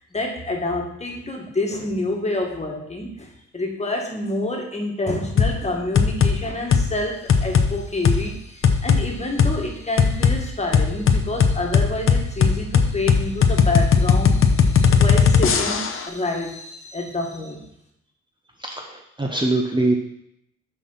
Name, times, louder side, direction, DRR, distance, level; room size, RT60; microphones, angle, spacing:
voice 1, 0.0-17.7, left 2 dB, 20° left, 1 dB, 1.8 m, -28 dB
sound 1, 5.4-5.6 6.0-6.4 6.7-6.9 7.3-7.7 8.1-8.2 8.6-9.0 9.4-9.5 10.0-10.4 10.7-16.0, left 6 dB, 45° left, 0.8 m, -17 dB
voice 2, 18.7-20.0, right 2 dB, 15° right, 1 dB, 0.9 m, -22 dB
6.3 x 5.5 x 5.7 m, 0.76 s
cardioid pair, 90°, 30 cm